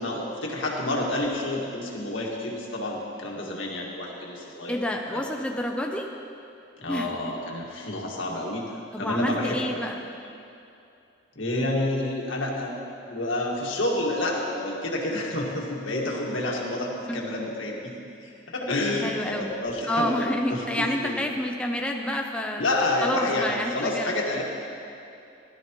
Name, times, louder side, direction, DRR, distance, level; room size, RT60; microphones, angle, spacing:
voice 1, 0.0-4.8 5.1-5.2 6.8-8.6 9.0-9.8 11.4-12.7 13.1-17.9 18.2-21.2 22.6-24.4, left 1 dB, 85° left, -2 dB, 1.9 m, -29 dB
voice 2, 4.7-6.1 6.9-7.1 8.9-10.0 17.1-17.2 19.0-19.5 19.9-22.6 23.0-24.1, left 1 dB, 5° left, 1 dB, 0.5 m, -28 dB
16.5 x 12.0 x 3.1 m, 2.7 s
head